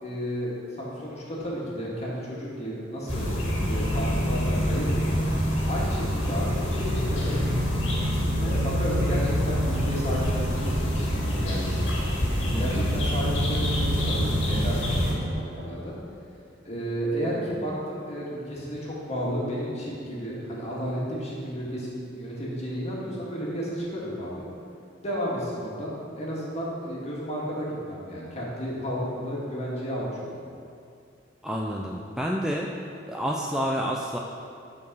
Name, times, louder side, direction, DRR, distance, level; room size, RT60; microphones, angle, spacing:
voice 1, 0.0-3.2 3.7-5.3 5.7-7.6 8.4-12.0 12.6-15.9 16.6-24.5 25.0-30.4, equal, 35° left, -5 dB, 1.9 m, -32 dB
sound 1, 3.1-15.1, equal, 80° left, 1.9 m, -26 dB
voice 2, 12.5-12.9 31.4-32.7 33.1-34.2, equal, 5° right, -1 dB, 0.4 m, -29 dB
8.6 x 4.6 x 6.2 m, 2.4 s
head